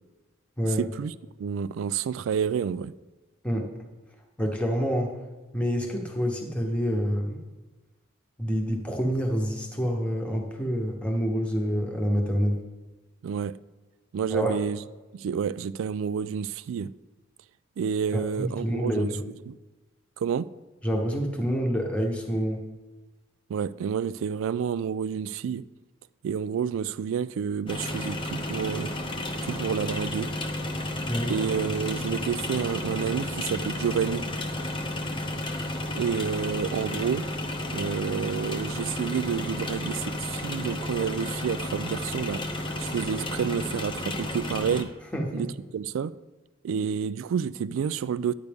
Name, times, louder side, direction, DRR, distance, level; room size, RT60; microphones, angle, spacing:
voice 1, 0.8-1.1 1.4-2.9 13.2-13.6 14.1-14.8 15.1-16.9 17.8-19.1 19.5-19.6 20.2-20.5 23.5-25.6 26.2-28.9 29.4-30.3 31.3-34.2 35.9-37.3 37.7-42.4 42.8-44.9 45.3-45.5 45.7-46.1 46.6-48.3, right 7 dB, 70° right, 0.3 m, -29 dB
voice 2, 4.4-5.1 5.5-7.4 8.4-12.6 14.3-14.5 18.1-19.2 20.8-22.6 31.1-31.3 45.1-45.5, equal, 5° left, 1.0 m, -27 dB
sound 1, 27.7-44.8, left 1 dB, 25° left, 0.7 m, -32 dB
10.5 x 8.1 x 3.5 m
head